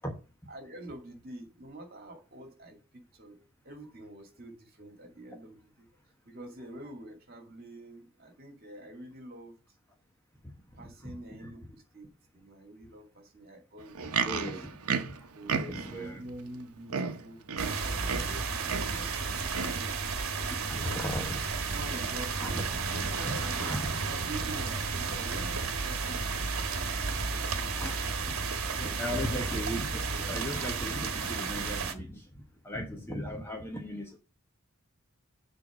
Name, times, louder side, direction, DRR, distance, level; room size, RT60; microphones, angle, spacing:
voice 1, 0.5-3.4 3.6-5.9 6.3-9.6 10.7-14.5 15.3-20.0 20.5-21.0 21.7-23.7 24.0-27.4 28.6-29.7 30.1-30.5, right 1 dB, 45° right, 2.2 m, -46 dB
voice 2, 10.8-11.5 14.2-15.2 15.5-16.2 20.3-21.3 22.3-22.6 23.2-24.0 27.5-28.4 28.8-34.2, equal, 10° left, 1.1 m, -38 dB
Livestock farm animals working animals, 13.8-16.0 16.6-16.7 16.9-18.4 18.7-19.0 19.5-19.9 20.5-20.6, right 5 dB, 90° right, 0.8 m, -33 dB
sound 1, 17.6-31.9, right 4 dB, 70° right, 1.3 m, -32 dB
6.9 x 4.6 x 6.1 m
head